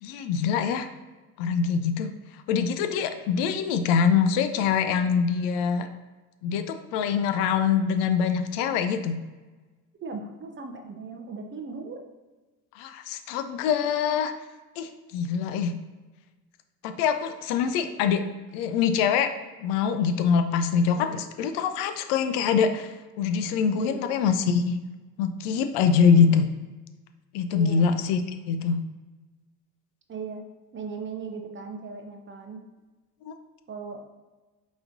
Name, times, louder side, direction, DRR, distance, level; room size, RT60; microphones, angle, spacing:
voice 1, 0.0-0.9 1.4-2.1 2.5-5.9 6.4-9.2 12.7-14.3 14.8-15.7 16.8-18.2 18.5-19.3 19.6-24.8 25.2-26.5 27.3-28.2 28.5-28.8 33.2-33.3, left 6 dB, 60° left, 9 dB, 0.5 m, -24 dB
voice 2, 10.0-12.0 20.9-21.2 23.7-24.2 25.9-26.4 27.5-27.9 30.1-30.4 30.7-32.6 33.7-34.0, right 4 dB, 25° right, 4 dB, 0.6 m, -38 dB
4.8 x 3.0 x 2.6 m, 1.2 s
hypercardioid pair, 70°, 48 cm